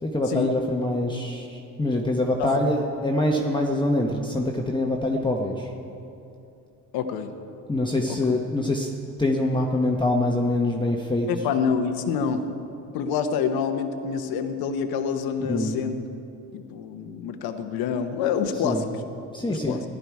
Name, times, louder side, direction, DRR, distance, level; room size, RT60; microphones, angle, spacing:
voice 1, 0.0-5.7 7.7-8.9 9.2-11.3 15.4-15.7 18.6-18.8 19.3-19.8, left 1 dB, 15° left, 0 dB, 1.1 m, -24 dB
voice 2, 2.4-2.7 6.9-7.3 11.3-12.4 12.9-15.9 16.5-18.9 19.5-19.8, left 6 dB, 85° left, 7 dB, 1.0 m, -27 dB
15.5 x 11.0 x 4.7 m, 2.7 s
cardioid pair, 85°, 36 cm